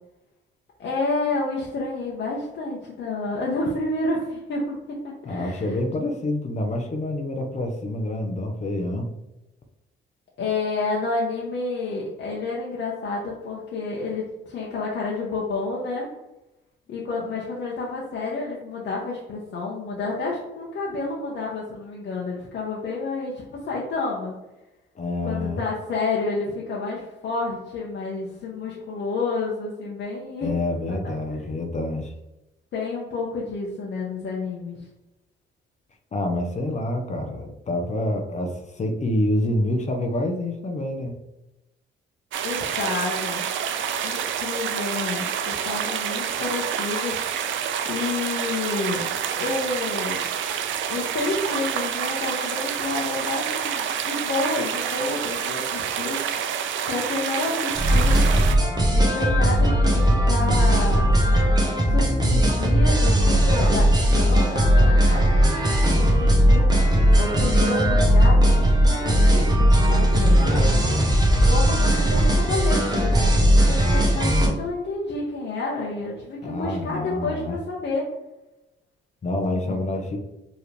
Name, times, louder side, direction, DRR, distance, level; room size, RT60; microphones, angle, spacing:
voice 1, 0.8-5.7 10.4-16.1 16.9-24.3 25.2-30.5 32.7-34.8 42.4-43.5 44.0-47.2 47.8-49.1 49.4-50.3 50.9-56.2 56.9-58.2 58.9-61.1 61.9-63.9 64.1-66.8 67.2-71.0 71.5-78.0 79.5-79.8, left 3 dB, 65° left, -4 dB, 1.0 m, -29 dB
voice 2, 5.2-9.1 25.0-25.6 30.4-32.1 36.1-41.1 76.4-77.6 79.2-80.2, left 1 dB, 35° left, 4 dB, 0.8 m, -27 dB
sound 1, 42.3-58.6, right 8 dB, 75° right, 0.5 m, -28 dB
sound 2, 57.7-74.5, equal, 20° right, 1.1 m, -18 dB
4.8 x 3.2 x 3.3 m, 0.95 s
cardioid pair, 90°, 20 cm